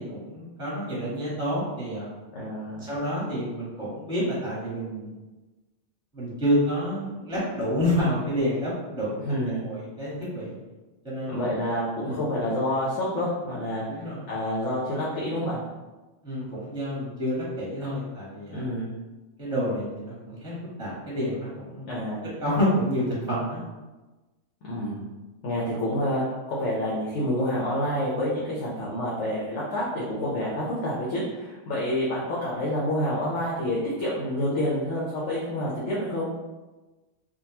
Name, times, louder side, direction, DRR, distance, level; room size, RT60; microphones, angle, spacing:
voice 1, 0.0-2.1 2.8-5.1 6.1-9.2 9.5-10.6 11.0-11.5 12.0-12.2 13.9-14.3 16.2-18.6 19.4-22.0 22.4-23.6, equal, 5° right, -8 dB, 1.0 m, -29 dB
voice 2, 2.3-2.9 9.2-9.6 11.3-15.6 18.5-18.9 21.8-22.3 24.7-25.0 25.4-26.2 26.5-36.3, left 1 dB, 75° left, -6 dB, 1.0 m, -28 dB
3.8 x 2.2 x 2.8 m, 1.2 s
omnidirectional pair, 1.2 m